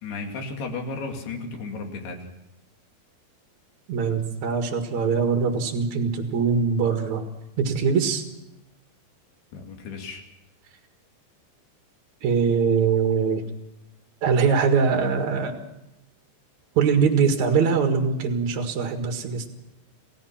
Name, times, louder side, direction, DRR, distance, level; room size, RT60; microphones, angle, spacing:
voice 1, 0.0-2.3 9.5-10.2, left 3 dB, 65° left, 3 dB, 4.4 m, -34 dB
voice 2, 3.9-7.2 7.6-8.2 12.2-13.4 14.2-15.6 16.7-19.5, right 6 dB, 50° right, 4 dB, 2.7 m, -22 dB
29.0 x 17.0 x 5.9 m, 0.90 s
omnidirectional pair, 5.0 m